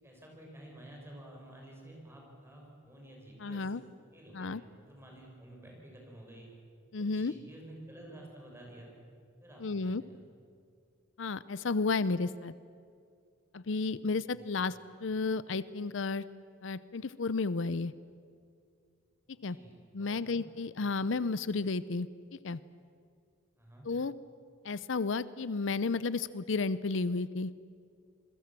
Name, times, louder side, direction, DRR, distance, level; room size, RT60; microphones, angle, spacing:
voice 1, 0.0-3.7 4.1-6.5 7.0-8.9 9.4-10.2 14.3-14.5 19.3-20.3 23.6-23.9, right 1 dB, 15° right, -1 dB, 6.7 m, -51 dB
voice 2, 3.4-3.8 4.3-4.6 6.9-7.3 9.6-10.0 11.2-12.5 13.5-16.2 16.6-17.9 19.4-19.6 19.9-22.1 22.4-22.6 23.8-24.1 24.6-27.5, left 3 dB, 70° left, 17 dB, 0.6 m, -32 dB
27.5 x 22.0 x 7.6 m, 2.3 s
head